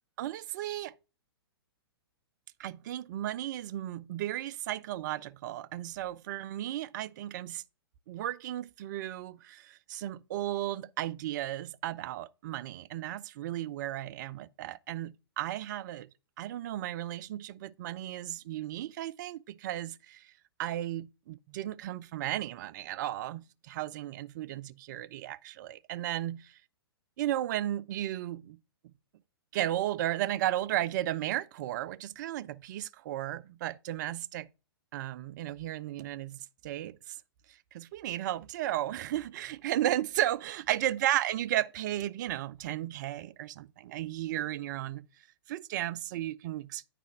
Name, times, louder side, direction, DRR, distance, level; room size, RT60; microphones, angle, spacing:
voice 1, 0.2-0.9 2.6-7.6 8.1-16.1 16.4-20.3 20.6-26.5 27.2-28.6 29.5-34.5 34.9-37.2 37.5-45.1 45.5-46.9, right 13 dB, 45° right, 0.4 m, -34 dB
9.3 x 3.3 x 6.1 m
figure-of-eight pair, 115°, 13 cm